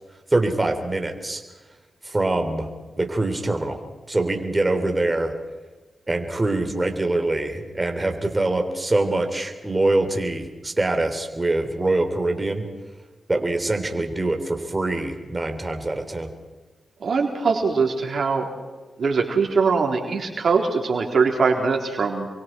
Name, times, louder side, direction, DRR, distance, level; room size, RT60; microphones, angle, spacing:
voice 1, 0.3-1.4 2.0-2.7 3.0-3.8 4.1-5.3 6.1-12.7 13.3-16.3, right 2 dB, 25° right, 5 dB, 3.6 m, -24 dB
voice 2, 17.0-18.5 19.0-22.3, right 4 dB, 65° right, 1 dB, 3.8 m, -22 dB
29.0 x 23.5 x 4.6 m, 1.3 s
supercardioid pair, 45°, 0 cm